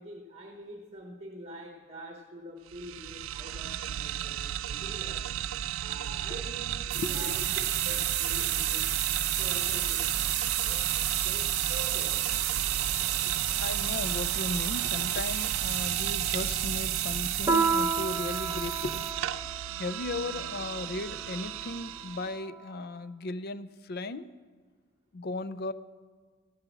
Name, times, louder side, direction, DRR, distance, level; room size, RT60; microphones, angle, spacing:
voice 1, 0.0-5.3 5.8-7.5 7.8-8.9 9.2-10.4 10.6-10.9 11.2-12.2, equal, 35° right, 2 dB, 1.2 m, -45 dB
sound 1, 2.7-22.4, right 10 dB, 80° right, 0.3 m, -35 dB
voice 2, 6.9-7.5 13.6-19.3 19.8-24.3 25.1-25.7, left 3 dB, 55° left, 15 dB, 0.5 m, -36 dB
sound 2, 6.9-19.1, right 12 dB, 55° right, 0.9 m, -31 dB
Piano, 17.5-22.4, right 4 dB, 15° right, 0.8 m, -32 dB
15.0 x 7.8 x 7.2 m, 1.5 s
head